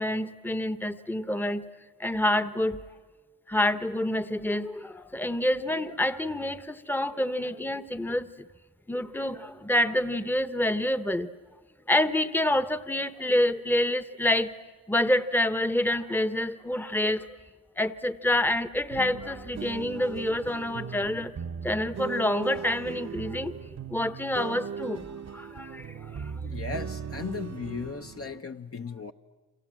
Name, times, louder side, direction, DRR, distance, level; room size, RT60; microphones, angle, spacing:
voice 1, 0.0-1.6 2.0-2.8 3.5-8.3 8.9-11.3 11.9-14.5 14.9-17.3 17.8-21.3 21.6-23.5 23.9-25.0 25.3-26.3, left 1 dB, 5° left, 0.9 m, -27 dB
sound 1, 18.9-28.4, right 6 dB, 45° right, 0.9 m, -38 dB
voice 2, 26.4-29.1, left 5 dB, 35° left, 0.8 m, -36 dB
28.5 x 27.0 x 7.6 m
cardioid pair, 60°, 39 cm